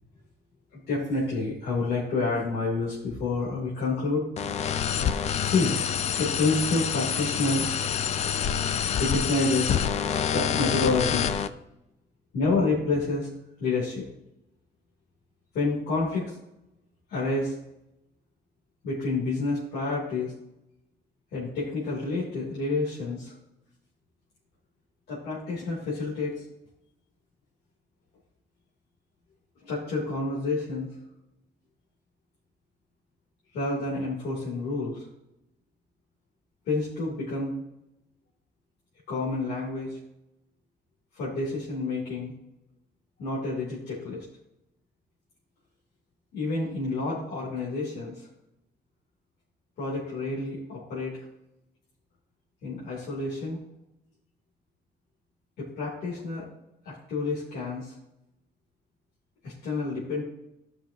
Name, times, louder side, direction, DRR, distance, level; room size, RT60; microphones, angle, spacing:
voice 1, 0.7-4.3 5.4-5.8 6.2-7.7 9.0-9.8 10.3-11.3 12.3-13.3 13.6-14.1 15.5-16.4 17.1-17.6 18.8-20.3 21.3-23.3 25.1-26.4 29.6-30.9 33.5-35.1 36.6-37.6 39.1-40.0 41.1-42.3 43.2-44.2 46.3-48.3 49.8-51.3 52.6-53.6 55.6-56.5 56.8-57.9 59.4-60.2, left 3 dB, 65° left, -7 dB, 3.0 m, -29 dB
sound 1, 4.4-11.5, left 8 dB, 40° left, 0.4 m, -27 dB
15.0 x 5.8 x 2.8 m, 0.87 s
cardioid pair, 180°, 18 cm